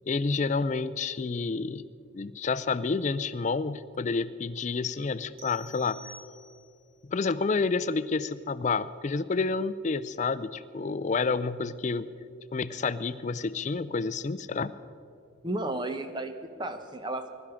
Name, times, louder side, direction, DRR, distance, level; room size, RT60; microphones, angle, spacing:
voice 1, 0.1-1.8 2.1-6.0 7.1-12.1 12.5-14.7, left 4 dB, 35° left, 15 dB, 0.4 m, -29 dB
sound 1, 5.4-6.9, right 1 dB, 75° right, 2.1 m, -49 dB
voice 2, 15.4-17.3, right 2 dB, 20° right, 8 dB, 0.8 m, -33 dB
21.5 x 12.0 x 5.0 m, 2.5 s
head